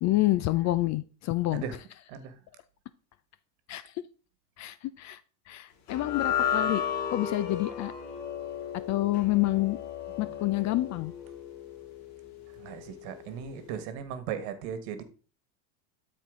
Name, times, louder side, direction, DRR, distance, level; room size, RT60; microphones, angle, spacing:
voice 1, 0.0-1.6 3.7-3.8 4.6-5.2 5.5-6.8 7.1-7.9 8.9-9.8 10.2-11.1, left 17 dB, 35° left, 15 dB, 0.4 m, -28 dB
sound 1, 5.9-12.3, left 8 dB, 55° left, 2.2 m, -33 dB
voice 2, 12.6-15.0, right 8 dB, 60° right, 11 dB, 1.5 m, -37 dB
12.5 x 4.5 x 3.7 m, 0.36 s
supercardioid pair, 105°, 49 cm